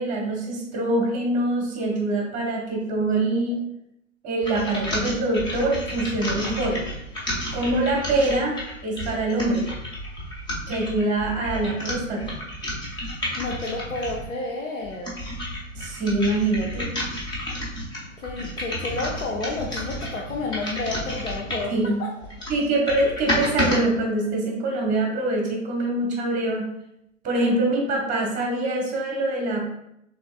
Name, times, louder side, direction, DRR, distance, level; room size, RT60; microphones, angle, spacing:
voice 1, 0.0-3.6 4.2-6.8 7.5-8.6 8.8-9.6 10.7-12.3 15.8-16.9 21.7-22.0 22.5-26.7 27.2-29.7, right 2 dB, 20° right, 0 dB, 1.3 m, -24 dB
sound 1, 4.4-14.3 14.8-21.8 22.2-23.8, equal, 10° left, 0.8 m, -31 dB
voice 2, 13.4-15.2 18.2-22.1, left 3 dB, 70° left, -1 dB, 0.8 m, -31 dB
6.1 x 3.2 x 2.4 m, 0.78 s
figure-of-eight pair, 110°, 39 cm